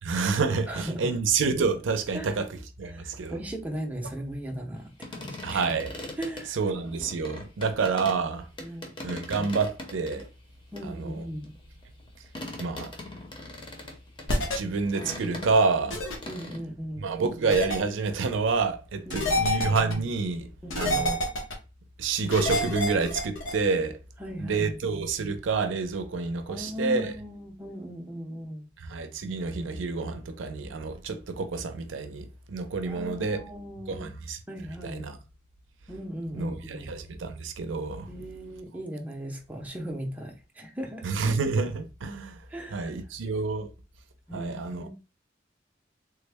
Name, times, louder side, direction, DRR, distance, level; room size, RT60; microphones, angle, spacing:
voice 1, 0.0-2.5 2.8-3.4 5.4-5.9 6.5-8.5 9.0-10.3 10.8-11.2 12.6-12.9 14.5-16.0 17.0-20.5 20.8-21.2 22.0-24.0 24.4-27.1 28.8-33.4 33.9-34.4 34.8-35.2 36.3-38.1 41.0-42.4 42.7-43.7 44.3-44.9, right 4 dB, 75° right, 0.5 m, -28 dB
voice 2, 0.7-1.1 2.1-2.3 2.8-5.6 6.2-6.6 8.6-8.9 10.7-11.5 16.3-17.0 19.1-19.5 20.6-21.0 24.2-24.8 26.5-28.7 32.9-34.1 34.5-35.1 35.9-36.9 38.1-41.0 42.5-42.9 44.3-44.9, equal, 10° right, 0.5 m, -37 dB
sound 1, 5.0-8.2 8.6-10.3 10.8-15.9 16.2-16.6, left 1 dB, 25° left, 0.7 m, -40 dB
sound 2, 14.3-14.6 15.9-16.2 17.5-17.8 19.1-19.9 20.7-21.5 22.3-23.5, left 1 dB, 80° left, 0.9 m, -27 dB
3.3 x 2.1 x 3.3 m
head